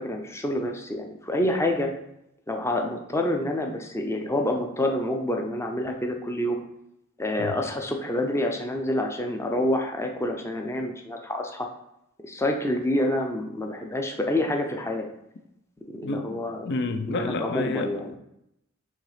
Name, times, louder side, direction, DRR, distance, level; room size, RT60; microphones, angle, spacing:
voice 1, 0.0-1.9 2.5-6.6 7.2-11.7 12.2-15.1 15.9-16.7 17.1-18.0, left 1 dB, 15° left, 3 dB, 0.6 m, -27 dB
voice 2, 16.0-18.2, left 2 dB, 60° left, 8 dB, 0.6 m, -30 dB
6.5 x 3.2 x 5.0 m, 0.81 s
head